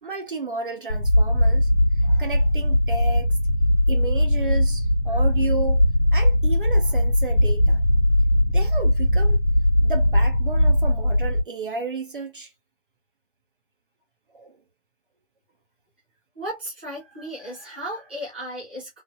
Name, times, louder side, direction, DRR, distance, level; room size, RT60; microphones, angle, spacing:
voice 1, 0.0-1.7 2.0-3.3 3.9-5.8 6.1-7.8 8.5-9.4 9.8-12.5 14.3-14.6, right 3 dB, 50° right, 0.6 m, -32 dB
sound 1, 0.9-11.4, left 1 dB, 60° left, 1.1 m, -19 dB
voice 2, 16.3-19.0, equal, 10° right, 0.6 m, -35 dB
3.2 x 2.1 x 2.3 m
hypercardioid pair, 170°, 34 cm